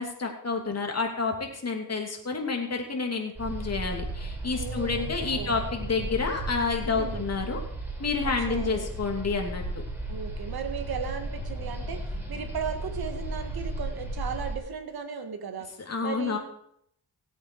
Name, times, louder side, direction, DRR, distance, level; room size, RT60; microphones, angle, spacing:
voice 1, 0.0-7.6 8.0-9.6 15.9-16.4, left 4 dB, 40° left, 2 dB, 2.8 m, -29 dB
sound 1, 3.4-14.6, right 1 dB, 5° right, 4.2 m, -35 dB
voice 2, 4.5-5.6 6.8-7.3 8.2-8.9 10.1-15.7 16.0-16.4, right 6 dB, 75° right, 7 dB, 1.8 m, -36 dB
17.5 x 8.2 x 4.7 m, 0.71 s
cardioid pair, 90°, 37 cm